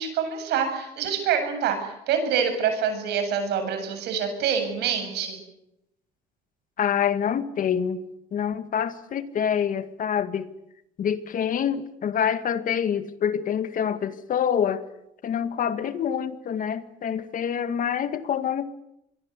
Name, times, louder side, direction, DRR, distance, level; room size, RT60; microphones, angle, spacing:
voice 1, 0.0-5.4, right 7 dB, 80° right, 7 dB, 7.9 m, -26 dB
voice 2, 6.8-8.0 8.3-10.5 11.0-14.8 15.2-18.6, left 8 dB, 50° left, 12 dB, 1.9 m, -26 dB
25.5 x 22.5 x 8.3 m, 0.82 s
cardioid pair, 110°, 17 cm